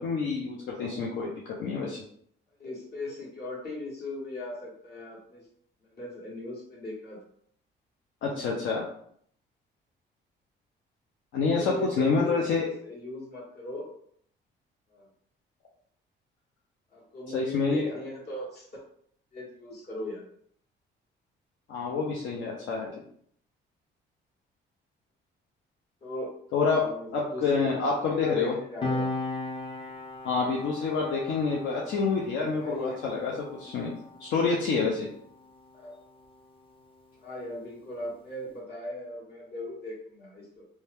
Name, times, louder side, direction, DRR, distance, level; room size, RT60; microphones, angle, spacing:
voice 1, 0.0-1.3 1.6-2.0 8.2-8.8 11.3-12.7 17.3-17.9 21.7-22.9 26.5-26.9 27.1-28.5 30.2-33.9 34.2-35.1, left 4 dB, 75° left, -2 dB, 0.6 m, -27 dB
voice 2, 2.6-5.4 5.9-7.2 11.5-13.9 14.9-15.1 16.9-18.8 19.3-20.2 26.0-26.3 26.8-27.7 28.1-29.1 32.4-33.0 35.7-36.0 37.2-40.7, left 1 dB, 55° left, -4 dB, 1.4 m, -38 dB
Piano, 28.8-35.8 36.1-36.3, left 2 dB, 25° left, 0.6 m, -37 dB
2.7 x 2.3 x 3.3 m, 0.64 s
cardioid pair, 90°, 20 cm